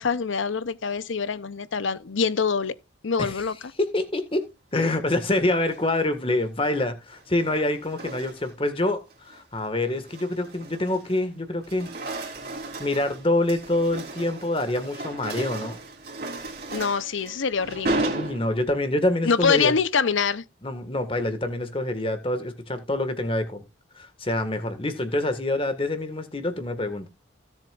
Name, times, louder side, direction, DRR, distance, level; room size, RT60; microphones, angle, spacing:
voice 1, 0.0-2.8 3.0-3.6 16.7-18.1 19.2-20.4, left 5 dB, 80° left, 0.7 m, -25 dB
voice 2, 3.8-11.9 12.8-15.8 18.1-19.7 20.6-23.6 24.0-27.1, left 1 dB, 30° left, 1.7 m, -26 dB
sound 1, 5.5-6.0 7.1-8.7 9.1-9.4 9.9-11.3 11.6-18.9, right 2 dB, 50° right, 3.2 m, -35 dB
17.0 x 7.2 x 2.4 m
head